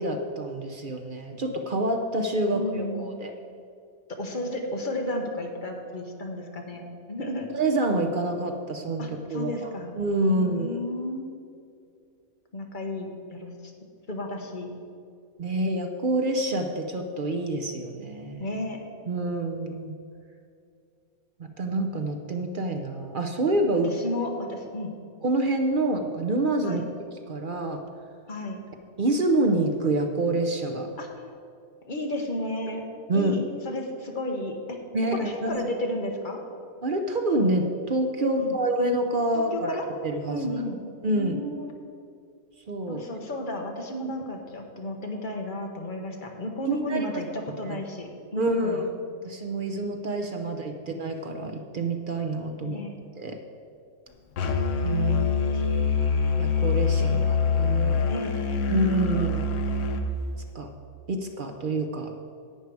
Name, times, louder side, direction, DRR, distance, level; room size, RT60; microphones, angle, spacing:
voice 1, 0.0-3.3 7.5-10.8 15.4-18.6 19.1-19.9 21.4-23.9 25.2-26.8 27.3-27.8 29.0-30.9 33.1-33.4 34.9-35.6 36.8-39.8 40.0-40.5 41.0-41.4 42.7-43.2 46.6-47.2 47.7-47.8 48.4-48.8 49.2-52.8 53.2-53.4 54.8-55.2 56.4-57.2 57.6-58.0 58.7-59.5 60.5-60.7 61.1-62.1, right 2 dB, 50° right, 5 dB, 0.7 m, -27 dB
voice 2, 2.5-3.2 4.1-6.8 7.1-7.5 9.0-10.0 10.3-11.3 12.5-13.7 14.1-14.7 18.4-18.8 23.9-24.9 26.6-26.9 28.3-28.6 31.0-31.1 31.9-32.8 33.1-34.8 35.1-36.4 38.4-38.6 39.3-39.9 40.3-40.8 41.2-41.7 42.9-48.8 50.7-50.9 52.7-52.9 55.5-55.7 57.0-57.4 58.1-58.3, left 1 dB, 35° left, 2 dB, 1.2 m, -33 dB
Musical instrument, 54.4-60.0, left 5 dB, 60° left, 1.1 m, -24 dB
11.0 x 8.3 x 4.7 m, 2.4 s
omnidirectional pair, 1.5 m